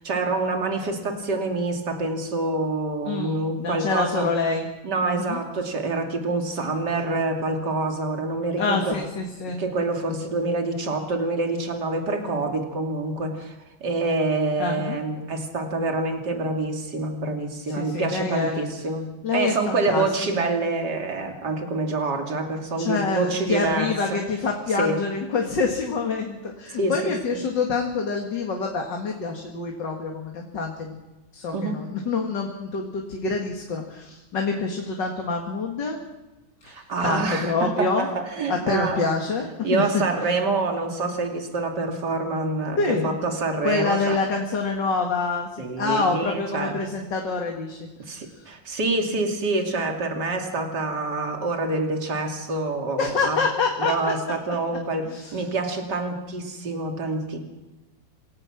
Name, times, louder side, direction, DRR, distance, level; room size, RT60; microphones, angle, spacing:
voice 1, 0.0-4.3 4.8-9.0 9.6-13.5 13.8-24.2 24.7-25.0 26.8-27.1 31.5-31.8 36.6-39.1 39.6-44.2 45.6-46.8 48.0-53.4 53.8-57.4, right 3 dB, 55° right, 3 dB, 3.3 m, -26 dB
voice 2, 3.1-4.7 5.0-5.4 8.6-9.6 14.6-15.0 17.7-18.7 19.2-20.1 20.4-20.5 22.8-31.0 31.3-36.0 36.6-38.1 38.5-40.0 42.8-43.2 43.6-48.2 52.9-53.9 55.1-55.4, left 4 dB, 65° left, 1 dB, 2.8 m, -26 dB
27.5 x 17.5 x 6.1 m, 1.1 s
omnidirectional pair, 2.1 m